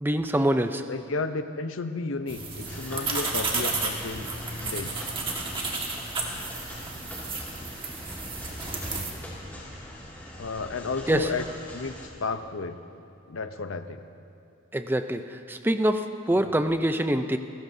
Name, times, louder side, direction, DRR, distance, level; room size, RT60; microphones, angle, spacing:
voice 1, 0.0-0.8 11.1-11.3 14.7-17.4, right 1 dB, 10° right, 8 dB, 0.5 m, -25 dB
voice 2, 0.9-4.3 4.6-5.0 10.3-11.4 11.7-11.9 12.2-12.8 13.3-14.0, left 3 dB, 70° left, 9 dB, 0.7 m, -32 dB
sound 1, 2.3-9.1, right 3 dB, 25° right, 1.6 m, -32 dB
sound 2, 2.6-12.1, left 1 dB, 10° left, 2.3 m, -42 dB
29.0 x 14.5 x 2.7 m, 2.6 s
head